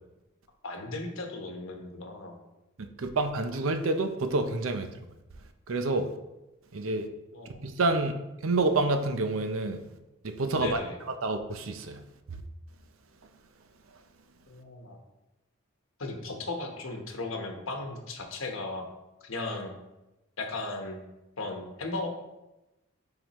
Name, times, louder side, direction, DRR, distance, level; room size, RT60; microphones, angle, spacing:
voice 1, 0.6-2.4 7.3-7.6 10.5-11.0 14.5-15.0 16.0-18.9 19.2-19.7 20.4-21.0 21.4-22.1, left 2 dB, 85° left, 3 dB, 1.1 m, -36 dB
voice 2, 3.0-4.9 5.7-6.1 6.7-7.1 7.6-8.1 8.4-9.8 10.2-10.8 11.2-12.0, right 2 dB, 85° right, 8 dB, 0.6 m, -28 dB
9.7 x 3.9 x 3.0 m, 0.98 s
head